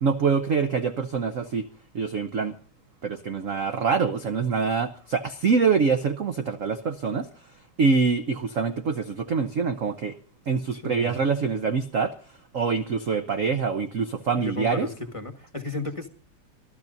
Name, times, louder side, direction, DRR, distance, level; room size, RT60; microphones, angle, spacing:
voice 1, 0.0-1.7 1.9-2.6 3.0-7.3 7.8-10.2 10.5-12.1 12.5-14.9, right 5 dB, 55° right, 9 dB, 0.9 m, -25 dB
voice 2, 10.7-11.2 14.3-16.1, left 2 dB, 15° left, 6 dB, 1.4 m, -34 dB
25.5 x 13.5 x 2.7 m, 0.43 s
omnidirectional pair, 2.4 m